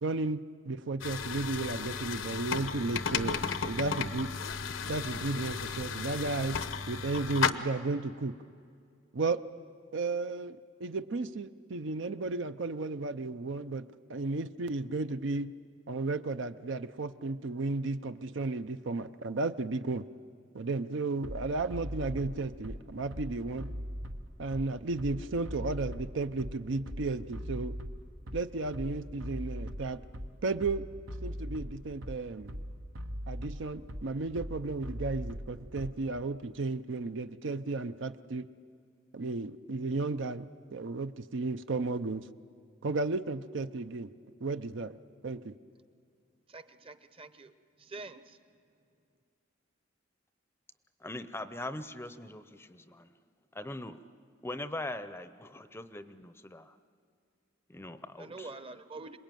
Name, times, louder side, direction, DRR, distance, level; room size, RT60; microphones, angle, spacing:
voice 1, 0.0-4.3 4.9-6.6 6.9-8.3 9.1-9.4 9.9-15.5 15.9-20.0 20.5-23.7 24.4-27.8 28.3-30.0 30.4-30.9 31.2-32.6 33.3-38.5 39.1-42.2 42.8-44.1 44.4-45.0 45.2-45.5, right 3 dB, 65° right, 11 dB, 0.6 m, -34 dB
sound 1, 1.0-7.5, left 6 dB, 75° left, 0.9 m, -34 dB
Bass drum, 21.2-36.2, equal, 90° right, 1.5 m, -40 dB
voice 2, 46.5-47.5 47.9-48.2 58.2-59.2, right 3 dB, 30° right, 11 dB, 0.9 m, -45 dB
voice 3, 51.0-53.1 53.5-54.0 54.4-56.8 57.7-58.6, left 1 dB, 10° left, 11 dB, 0.6 m, -41 dB
27.0 x 21.0 x 9.1 m, 2.3 s
head